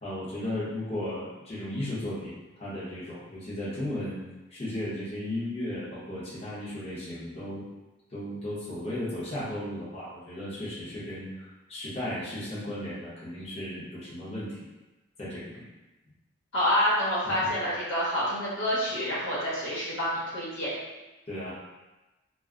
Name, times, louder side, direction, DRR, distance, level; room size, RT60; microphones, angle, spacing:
voice 1, 0.0-4.2 4.5-7.7 8.1-14.7 15.2-15.7 17.2-17.5 21.3-21.5, left 1 dB, 30° left, -10 dB, 0.7 m, -35 dB
voice 2, 16.5-20.7, equal, 80° left, -8 dB, 1.0 m, -27 dB
2.2 x 2.0 x 3.5 m, 1.1 s
head